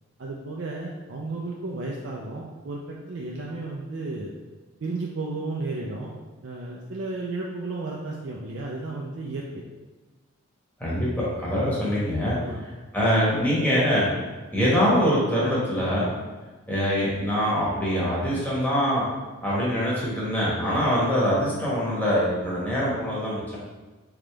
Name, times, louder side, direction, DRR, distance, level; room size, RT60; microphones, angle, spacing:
voice 1, 0.2-4.3 4.8-6.1 6.4-9.6 12.3-12.6, right 3 dB, 60° right, -3 dB, 0.5 m, -33 dB
voice 2, 10.8-14.1 14.5-16.1 16.7-19.0 19.4-23.6, equal, 10° left, -7 dB, 1.2 m, -24 dB
3.8 x 3.5 x 3.4 m, 1.2 s
head